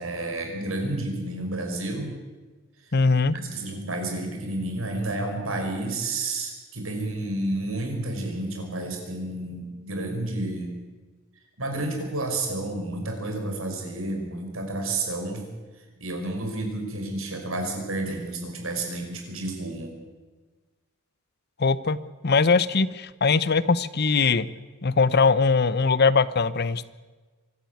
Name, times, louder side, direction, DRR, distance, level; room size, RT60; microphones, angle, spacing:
voice 1, 0.0-2.1 2.8-3.0 3.3-10.7 11.6-15.4 16.0-19.9, right 2 dB, 80° right, 4 dB, 5.3 m, -30 dB
voice 2, 2.9-3.4 21.6-22.0 22.2-24.5 24.8-26.9, left 4 dB, 50° left, 17 dB, 0.8 m, -21 dB
24.0 x 13.0 x 9.4 m, 1.3 s
head